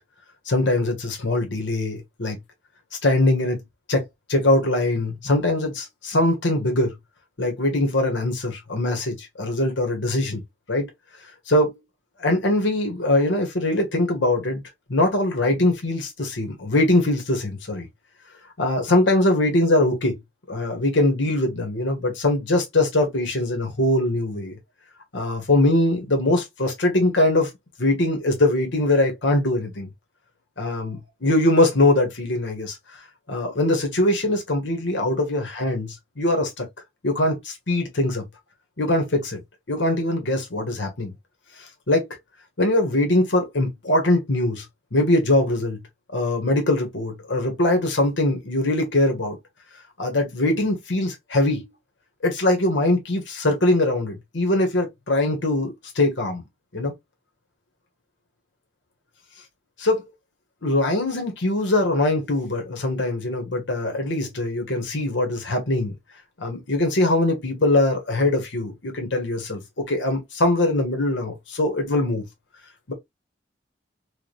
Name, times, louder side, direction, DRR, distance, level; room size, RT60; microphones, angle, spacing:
voice 1, 0.5-2.4 3.0-3.6 3.9-4.0 4.3-6.9 7.4-10.4 10.7-10.8 11.5-11.8 12.2-14.6 14.9-17.9 18.6-20.2 20.5-24.5 25.1-27.5 27.8-29.9 30.6-32.8 33.3-36.6 37.0-38.2 38.8-39.4 39.7-41.1 41.6-42.1 42.6-44.7 44.9-45.8 46.1-49.4 50.0-51.7 52.2-56.4 56.7-56.9 59.8-60.0 60.6-65.9 66.4-72.2 72.9-73.0, left 1 dB, 85° left, 1.3 m, -22 dB
4.8 x 2.2 x 3.1 m
head